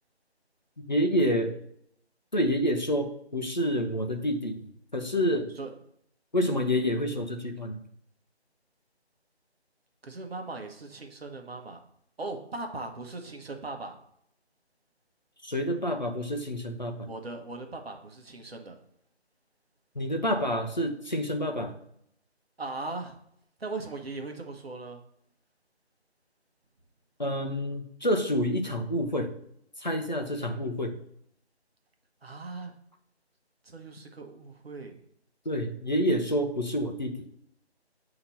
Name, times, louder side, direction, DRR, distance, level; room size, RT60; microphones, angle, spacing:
voice 1, 0.9-1.6 2.3-4.6 4.9-5.5 6.3-7.8 15.4-17.1 20.0-21.7 27.2-29.3 29.8-31.0 35.5-37.2, equal, 45° left, 4 dB, 0.5 m, -28 dB
voice 2, 10.0-11.8 12.2-14.0 17.0-18.8 22.6-23.2 23.6-25.0 32.2-32.7 33.6-35.0, right 3 dB, 65° right, 4 dB, 1.0 m, -39 dB
7.1 x 2.9 x 5.4 m, 0.71 s
figure-of-eight pair, 175°, 33 cm